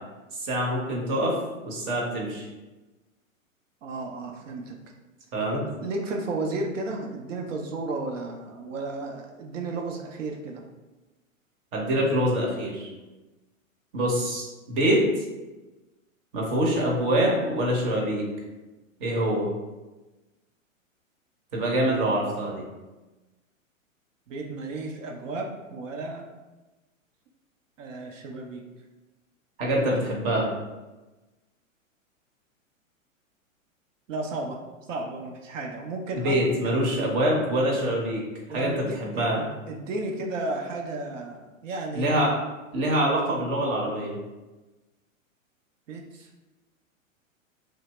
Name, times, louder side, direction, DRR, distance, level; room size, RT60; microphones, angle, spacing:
voice 1, 0.3-1.4 1.6-2.5 5.3-5.6 11.7-12.9 13.9-15.2 16.3-18.2 19.0-19.5 21.5-22.6 29.6-30.5 36.1-38.2 38.5-39.4 41.9-42.3 42.7-44.2, right 1 dB, 30° right, -2 dB, 0.7 m, -25 dB
voice 2, 3.8-4.8 5.5-10.6 24.3-26.2 27.8-28.6 34.1-34.6 34.9-36.7 38.5-42.2 45.9-46.3, right 2 dB, 65° right, 1 dB, 0.6 m, -33 dB
2.8 x 2.0 x 3.1 m, 1.1 s
hypercardioid pair, 115°, 41 cm